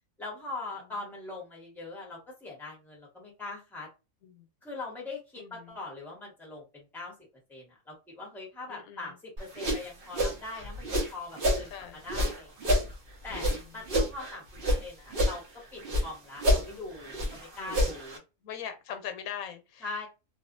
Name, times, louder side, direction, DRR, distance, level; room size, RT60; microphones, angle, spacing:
voice 1, 0.2-3.9 4.6-7.1 7.5-12.8 13.2-15.4 15.7-18.2 19.8-20.1, left 3 dB, ahead, 0.9 m, -42 dB
voice 2, 5.4-5.7 8.7-9.2 11.7-12.0 13.3-13.5 17.6-17.9 18.4-20.1, left 8 dB, 90° left, 1.0 m, -42 dB
sound 1, 9.4-11.7 12.1-14.8 15.1-16.1 16.4-18.2, equal, 50° right, 0.9 m, -28 dB
2.6 x 2.3 x 2.4 m
omnidirectional pair, 1.5 m